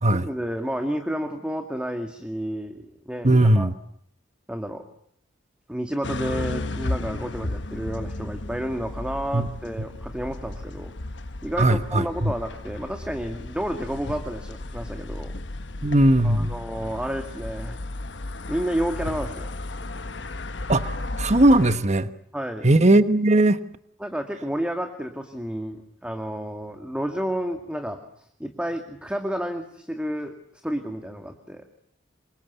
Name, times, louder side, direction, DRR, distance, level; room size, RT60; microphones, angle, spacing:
voice 1, 0.1-3.7 4.5-4.8 5.7-10.9 11.4-15.3 16.2-17.8 18.5-19.5 22.3-22.7 24.0-28.0 28.4-30.3 30.6-31.6, equal, 5° right, 5 dB, 2.2 m, -30 dB
voice 2, 3.2-3.7 9.3-9.5 11.6-12.3 15.8-16.6 20.7-22.1 22.6-23.6, right 1 dB, 40° right, 11 dB, 1.3 m, -19 dB
sound 1, 6.0-21.8, left 2 dB, 70° left, 1.2 m, -34 dB
27.5 x 25.5 x 8.3 m, 0.70 s
head